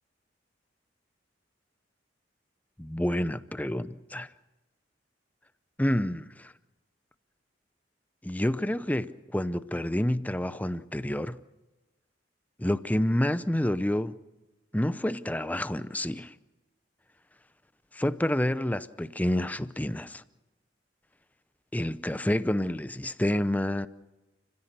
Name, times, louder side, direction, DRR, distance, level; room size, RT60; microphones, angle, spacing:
voice 1, 2.8-4.3 5.8-6.5 8.2-11.4 12.6-14.1 14.7-16.3 17.9-20.2 21.7-23.9, left 1 dB, 10° left, 0.6 m, -28 dB
30.0 x 16.0 x 6.7 m
head